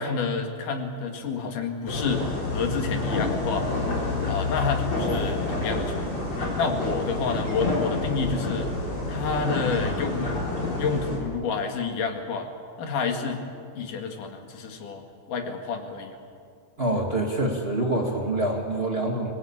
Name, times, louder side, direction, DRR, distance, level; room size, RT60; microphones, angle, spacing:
voice 1, 0.0-3.7 4.3-6.2 6.6-8.7 9.1-10.4 10.8-12.5 12.8-13.4 13.8-15.0 15.3-16.2, left 5 dB, 90° left, 4 dB, 3.6 m, -29 dB
sound 1, 1.9-11.2, left 2 dB, 40° left, 5.2 m, -28 dB
voice 2, 16.8-19.3, right 1 dB, 25° right, 1 dB, 1.8 m, -26 dB
25.0 x 19.5 x 8.8 m, 2.4 s
omnidirectional pair, 3.6 m